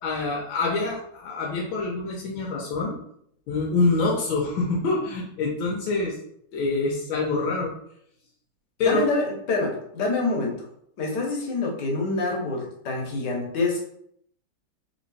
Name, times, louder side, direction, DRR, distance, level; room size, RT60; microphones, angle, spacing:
voice 1, 0.0-3.0 3.5-6.2 6.5-7.7 8.8-9.1, left 3 dB, 90° left, -3 dB, 1.6 m, -25 dB
voice 2, 8.8-10.7 11.0-13.8, left 3 dB, 65° left, 0 dB, 1.6 m, -26 dB
3.9 x 3.0 x 4.1 m, 0.70 s
omnidirectional pair, 2.1 m